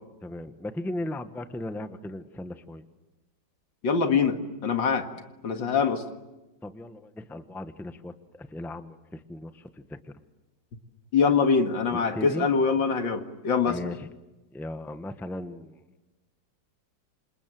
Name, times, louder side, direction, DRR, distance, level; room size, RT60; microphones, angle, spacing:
voice 1, 0.2-2.8 6.6-10.0 11.9-12.5 13.6-14.1 14.5-15.8, left 1 dB, ahead, 9 dB, 0.8 m, -37 dB
voice 2, 3.8-5.1 5.4-6.0 11.1-13.8, left 5 dB, 75° left, 6 dB, 2.5 m, -24 dB
28.0 x 27.0 x 7.7 m, 1.1 s
omnidirectional pair, 2.1 m